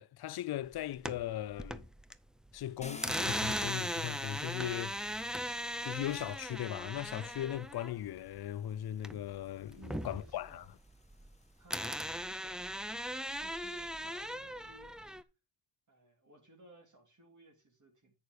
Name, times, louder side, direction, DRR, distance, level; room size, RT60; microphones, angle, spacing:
voice 1, 0.0-1.9 2.5-5.0 5.8-9.8 10.0-10.6, left 12 dB, 65° left, 0.5 m, -38 dB
sound 1, 0.7-2.2 2.5-9.4 9.7-11.3 11.7-15.2, equal, ahead, 0.6 m, -38 dB
Car, 2.8-6.9 7.9-8.0 8.5-11.8, left 3 dB, 15° left, 1.2 m, -52 dB
voice 2, 9.7-10.7 11.2-11.3 11.6-15.3 15.9-18.2, right 1 dB, 45° right, 3.2 m, -58 dB
8.3 x 6.7 x 4.9 m
cardioid pair, 75°, 41 cm